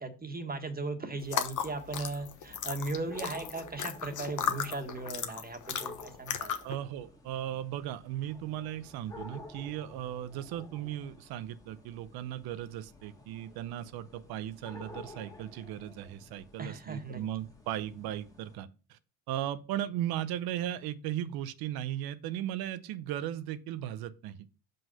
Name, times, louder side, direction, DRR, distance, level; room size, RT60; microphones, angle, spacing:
voice 1, 0.0-6.6 16.6-17.2, right 3 dB, 25° right, 6 dB, 1.6 m, -37 dB
sound 1, 1.2-6.7, left 8 dB, 55° left, 1.1 m, -35 dB
sound 2, 1.2-18.6, left 3 dB, 10° left, 1.7 m, -52 dB
voice 2, 6.6-19.0 19.3-24.5, right 12 dB, 90° right, 14 dB, 0.7 m, -37 dB
5.7 x 5.4 x 5.6 m, 0.34 s
cardioid pair, 85°, 36 cm